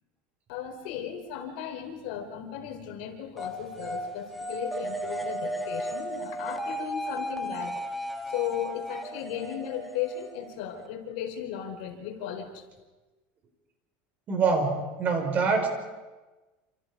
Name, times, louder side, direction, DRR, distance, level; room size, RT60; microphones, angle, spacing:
voice 1, 0.5-7.8 8.3-12.6, left 9 dB, 75° left, 4 dB, 4.2 m, -36 dB
sound 1, 3.4-10.9, right 1 dB, ahead, 1.8 m, -35 dB
voice 2, 14.3-15.7, right 4 dB, 35° right, 4 dB, 4.7 m, -25 dB
28.0 x 27.0 x 4.9 m, 1.2 s
supercardioid pair, 145°, 5 cm